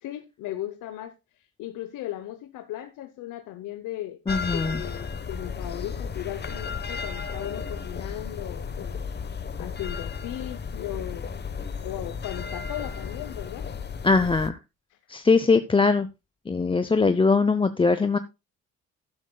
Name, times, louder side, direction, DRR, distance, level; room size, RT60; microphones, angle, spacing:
voice 1, 0.0-1.1 1.6-4.2 4.5-9.0 9.3-11.2 11.8-13.7 14.9-15.0, left 13 dB, 90° left, 0.9 m, -37 dB
sound 1, 4.3-14.5, left 5 dB, 35° left, 1.1 m, -34 dB
voice 2, 4.3-4.8 14.0-14.6 15.1-16.1 16.5-18.2, left 4 dB, 15° left, 0.6 m, -21 dB
12.0 x 11.5 x 2.3 m
cardioid pair, 90°, 30 cm